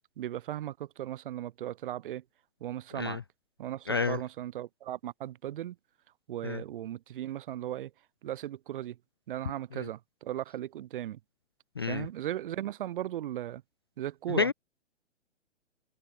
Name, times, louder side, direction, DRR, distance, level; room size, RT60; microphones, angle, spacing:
voice 1, 0.2-2.2 2.6-3.2 3.6-5.8 6.3-7.9 8.2-9.0 9.3-11.2 11.9-13.6 14.0-14.5, right 12 dB, 45° right, 1.5 m, -37 dB
voice 2, 3.9-4.2 6.4-6.6 11.8-12.1 14.3-14.5, left 5 dB, 20° left, 0.3 m, -29 dB
open air
figure-of-eight pair, 120°, 37 cm